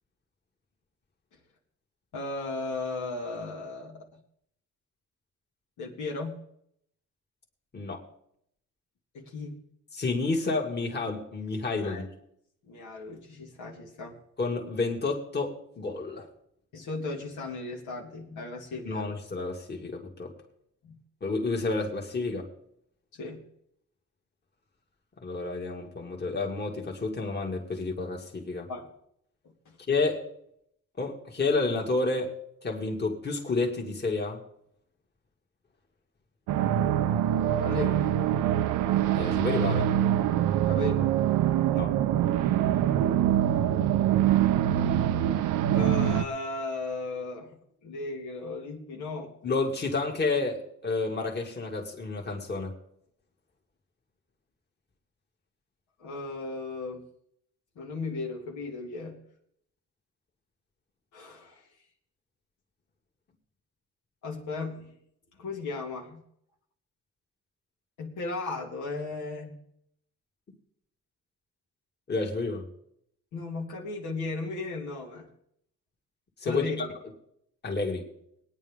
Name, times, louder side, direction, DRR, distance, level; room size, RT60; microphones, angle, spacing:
voice 1, 2.1-4.1 5.8-6.4 9.1-9.6 11.8-12.1 12.7-14.1 16.7-19.1 20.8-21.0 23.1-23.4 28.7-28.9 29.7-29.8 37.6-38.1 40.7-41.1 45.7-49.3 56.0-57.1 57.8-59.2 61.1-61.7 64.2-64.9 65.4-66.2 68.0-69.6 73.3-75.3 76.4-76.9, left 3 dB, 75° left, -1 dB, 2.6 m, -36 dB
voice 2, 7.7-8.0 9.9-12.0 14.4-16.3 18.8-20.3 21.2-22.5 25.2-28.7 29.9-30.2 31.0-32.3 32.6-34.4 39.0-39.9 41.7-41.9 49.4-52.7 72.1-72.6 76.4-76.9 77.6-78.1, left 3 dB, 35° left, 0 dB, 2.4 m, -30 dB
sound 1, 36.5-46.2, right 11 dB, 90° right, 0.7 m, -24 dB
21.0 x 9.6 x 3.7 m, 0.72 s
cardioid pair, 90°, 30 cm